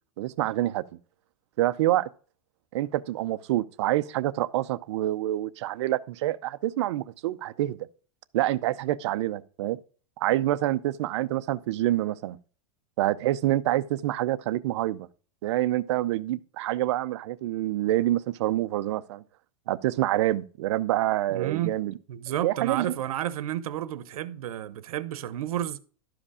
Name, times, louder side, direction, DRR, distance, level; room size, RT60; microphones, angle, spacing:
voice 1, 0.2-0.8 1.6-2.1 2.7-7.8 8.3-9.8 10.2-12.4 13.0-15.1 15.4-19.2 19.7-21.9 22.4-22.9, right 14 dB, 50° right, 0.6 m, -27 dB
voice 2, 21.3-21.7 22.1-25.8, right 11 dB, 75° right, 1.0 m, -31 dB
12.0 x 5.1 x 4.9 m
supercardioid pair, 170°, 18 cm